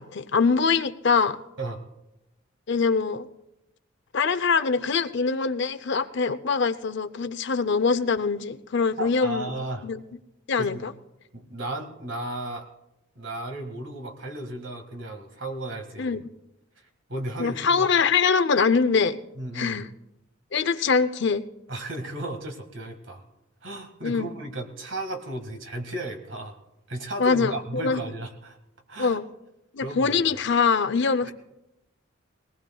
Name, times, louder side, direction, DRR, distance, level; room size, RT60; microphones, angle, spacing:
voice 1, 0.0-1.4 2.7-3.3 4.1-9.5 9.8-10.0 10.5-10.9 16.0-16.3 17.4-19.2 19.5-19.9 20.5-21.4 24.0-24.3 27.2-28.0 29.0-29.2 29.7-31.3, left 5 dB, 60° left, 14 dB, 0.5 m, -23 dB
voice 2, 9.0-9.9 10.6-10.9 11.3-12.7 13.2-16.2 17.1-17.9 19.4-19.9 21.7-23.2 23.6-26.6 26.9-28.6 28.9-29.2 29.8-30.4, right 1 dB, 65° right, 5 dB, 1.8 m, -34 dB
20.5 x 18.5 x 2.3 m, 0.92 s
head